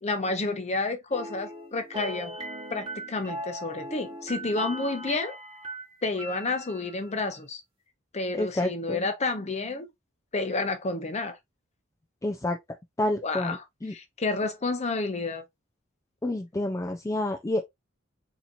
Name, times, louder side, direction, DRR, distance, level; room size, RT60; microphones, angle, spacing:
voice 1, 0.0-2.3 2.7-5.4 6.0-7.6 8.1-9.9 10.3-11.4 13.2-15.4, left 3 dB, 35° left, 0.7 m, -30 dB
sound 1, 1.1-7.1, right 1 dB, 30° right, 1.2 m, -39 dB
voice 2, 8.3-9.1 12.2-12.6 13.0-13.5 13.8-13.9 16.2-17.6, left 1 dB, 15° left, 0.4 m, -28 dB
4.1 x 2.9 x 2.5 m
head